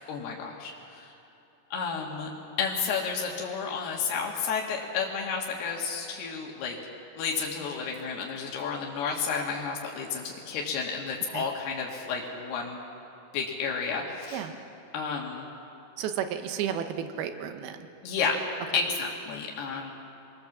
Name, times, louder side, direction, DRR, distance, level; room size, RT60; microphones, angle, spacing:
voice 1, 0.1-1.1 1.7-2.3 2.6-6.8 7.2-12.8 13.3-14.5 14.9-15.5 18.0-18.4 18.7-19.9, left 5 dB, 90° left, -1 dB, 3.8 m, -31 dB
voice 2, 16.0-17.9, right 9 dB, 80° right, 8 dB, 3.0 m, -32 dB
26.0 x 21.0 x 7.3 m, 2.8 s
omnidirectional pair, 4.5 m